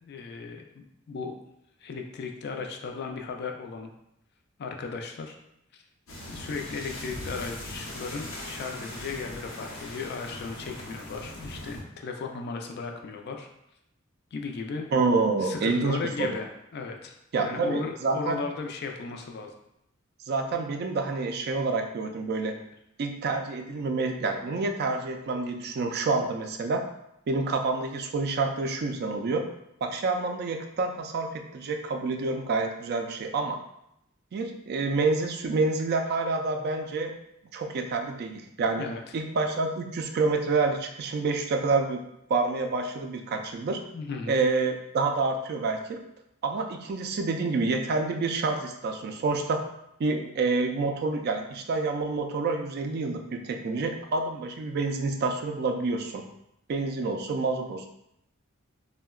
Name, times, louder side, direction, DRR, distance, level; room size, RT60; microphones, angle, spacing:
voice 1, 0.0-1.4 1.8-3.9 4.6-5.4 5.7-5.8 6.3-13.5 14.3-14.9 15.4-19.5 38.8-39.0 43.9-44.4, left 4 dB, 50° left, 3 dB, 0.3 m, -36 dB
sound 1, 6.1-11.8, left 1 dB, 90° left, 0.7 m, -40 dB
voice 2, 14.9-16.4 17.3-18.4 20.3-22.5 23.0-26.8 27.3-29.5 29.8-33.6 34.3-37.1 37.5-38.9 39.1-42.0 42.3-43.8 44.3-46.0 46.4-49.6 50.0-56.2 56.7-57.9, right 3 dB, 50° right, 4 dB, 0.3 m, -28 dB
3.5 x 2.1 x 2.3 m, 0.80 s
head